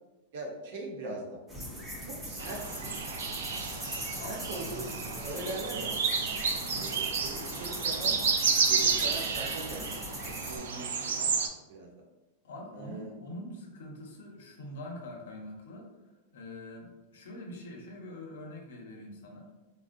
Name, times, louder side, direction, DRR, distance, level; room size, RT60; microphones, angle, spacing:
voice 1, 0.3-1.4 2.0-3.1 4.0-5.9 6.3-6.4 6.8-8.2 8.7-10.0 10.2-11.3 11.7-11.9 12.7-13.1, right 2 dB, 65° right, 0 dB, 0.7 m, -41 dB
sound 1, 1.5-10.6, equal, 5° right, 0.5 m, -40 dB
sound 2, 2.4-11.5, right 5 dB, 90° right, 0.3 m, -31 dB
voice 2, 6.6-6.9 12.4-15.9 16.3-19.5, left 1 dB, 85° left, 0 dB, 0.7 m, -44 dB
3.6 x 2.1 x 2.5 m, 1.1 s
supercardioid pair, 155°, 0 cm